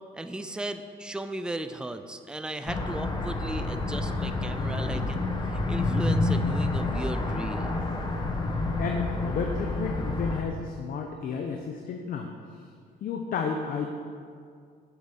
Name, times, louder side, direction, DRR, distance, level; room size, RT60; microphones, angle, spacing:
voice 1, 0.1-7.7, right 1 dB, 5° right, 8 dB, 0.5 m, -36 dB
sound 1, 2.7-10.4, left 2 dB, 25° left, 1.2 m, -28 dB
voice 2, 7.9-12.3 13.0-13.9, left 5 dB, 55° left, 3 dB, 0.9 m, -32 dB
8.2 x 6.4 x 7.4 m, 2.2 s
cardioid pair, 110°, 17 cm